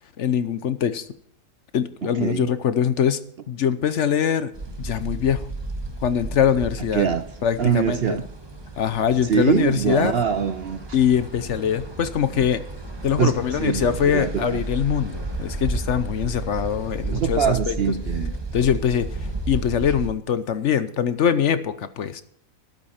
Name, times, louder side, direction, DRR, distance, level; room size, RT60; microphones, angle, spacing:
voice 1, 0.2-1.1 1.7-3.2 3.5-4.5 4.8-5.5 6.0-7.1 7.4-8.2 8.8-10.2 10.9-12.6 13.0-17.8 18.5-19.1 19.5-22.2, left 8 dB, 60° left, 1.0 m, -23 dB
sound 1, 4.5-20.1, right 2 dB, 20° right, 1.3 m, -33 dB
voice 2, 7.6-8.2 9.3-10.8 13.2-13.3 13.6-14.6 17.1-18.3, right 8 dB, 60° right, 0.7 m, -23 dB
13.5 x 12.0 x 4.3 m
omnidirectional pair, 1.5 m